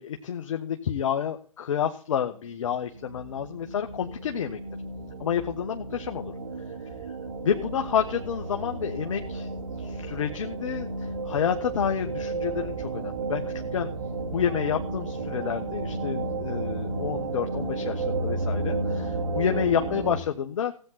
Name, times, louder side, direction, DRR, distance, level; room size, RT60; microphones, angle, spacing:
voice 1, 0.0-4.6 5.2-6.3 7.4-10.9 11.3-13.4 13.7-13.9 14.3-20.7, left 8 dB, 60° left, 5 dB, 1.4 m, -29 dB
sound 1, 2.9-20.2, right 3 dB, 60° right, 2.3 m, -33 dB
16.5 x 9.1 x 4.1 m, 0.41 s
figure-of-eight pair, 125°, 18 cm